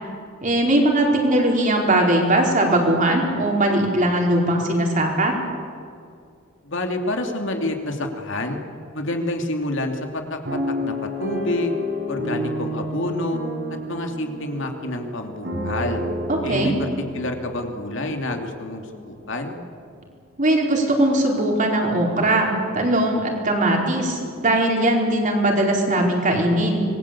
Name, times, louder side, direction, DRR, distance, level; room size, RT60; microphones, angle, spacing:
voice 1, 0.4-5.3 16.3-16.7 20.4-26.8, right 1 dB, 40° right, 0 dB, 4.7 m, -20 dB
voice 2, 6.6-8.6 8.9-10.4 10.8-11.8 12.1-13.4 13.9-16.0 16.4-16.9 17.1-19.6, left 1 dB, 65° left, 4 dB, 2.7 m, -28 dB
sound 1, 10.4-18.6 19.2-19.3 19.5-19.8, left 1 dB, 60° right, 6.0 m, -30 dB
26.0 x 21.0 x 8.5 m, 2.3 s
head